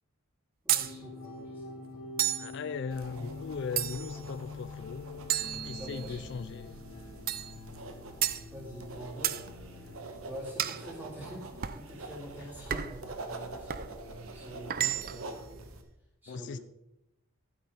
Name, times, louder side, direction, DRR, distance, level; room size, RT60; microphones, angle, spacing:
voice 1, 0.6-2.0 5.8-6.3 8.5-9.5 10.3-15.6 16.2-16.6, right 1 dB, 10° right, -5 dB, 4.0 m, -46 dB
sound 1, 0.7-0.9 2.2-2.5 3.8-4.2 5.3-6.2 7.3-7.5 8.2-8.4 9.2-9.4 10.6-10.8 11.6-11.8 12.7-13.0 13.7-13.9 14.7-15.3, right 12 dB, 40° right, 0.5 m, -31 dB
sound 2, 0.8-10.0, left 3 dB, 90° left, 2.4 m, -45 dB
voice 2, 2.4-5.0 5.6-6.8 16.3-16.6, left 5 dB, 50° left, 13 dB, 0.3 m, -38 dB
sound 3, 2.9-15.8, right 2 dB, 70° right, 1.3 m, -46 dB
12.0 x 9.9 x 3.9 m, 0.86 s
head